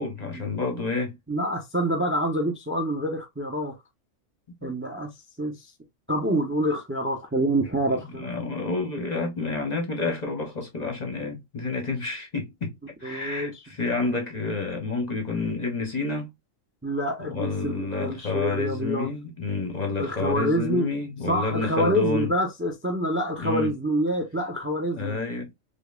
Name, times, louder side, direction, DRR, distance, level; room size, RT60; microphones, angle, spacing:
voice 1, 0.0-1.2 4.5-4.7 8.1-12.7 13.0-16.3 17.2-22.3 23.4-23.7 24.9-25.5, left 3 dB, 35° left, 0.8 m, -29 dB
voice 2, 1.3-3.7 4.6-5.1 5.4-5.7 6.1-8.3 13.0-13.5 16.8-19.1 20.0-20.9 21.3-25.2, equal, 15° right, 0.5 m, -26 dB
5.1 x 2.3 x 2.3 m
omnidirectional pair, 1.3 m